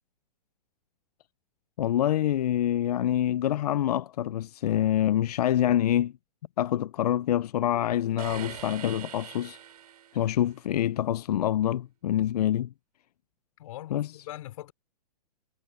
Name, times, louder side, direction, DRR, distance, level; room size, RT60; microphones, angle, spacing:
voice 1, 1.8-6.1 6.6-9.6 10.1-12.7 13.9-14.1, left 11 dB, 75° left, 0.6 m, -26 dB
sound 1, 8.2-10.4, right 10 dB, 75° right, 5.2 m, -42 dB
voice 2, 13.6-14.7, left 14 dB, 55° left, 4.6 m, -41 dB
hypercardioid pair, 145°, 20 cm